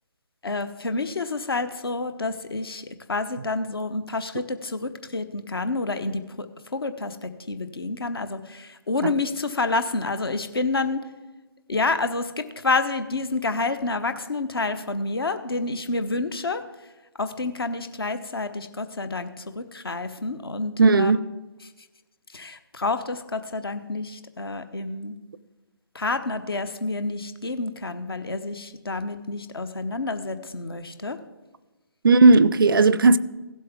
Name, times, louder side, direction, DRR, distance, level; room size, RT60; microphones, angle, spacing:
voice 1, 0.4-6.5 6.7-11.0 11.7-16.6 17.2-21.1 22.3-25.2 25.9-31.2, left 3 dB, 65° left, 0.9 m, -29 dB
voice 2, 20.8-21.2 32.0-33.2, right 3 dB, 60° right, 0.4 m, -15 dB
16.0 x 7.6 x 3.6 m
figure-of-eight pair, 140°, 13 cm